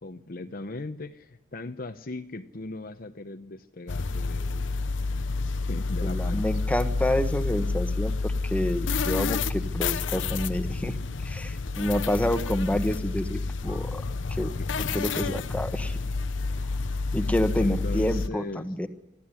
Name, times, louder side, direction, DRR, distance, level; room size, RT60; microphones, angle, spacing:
voice 1, 0.0-4.8 5.7-6.8 14.6-15.0 16.6-16.8 17.6-18.7, left 2 dB, 50° left, 7 dB, 0.9 m, -38 dB
sound 1, 3.9-18.3, left 3 dB, 85° left, 0.8 m, -29 dB
voice 2, 6.0-11.0 11.2-14.0 14.3-16.0 17.1-18.9, left 1 dB, 10° left, 9 dB, 1.4 m, -28 dB
25.0 x 14.5 x 9.8 m, 0.94 s
head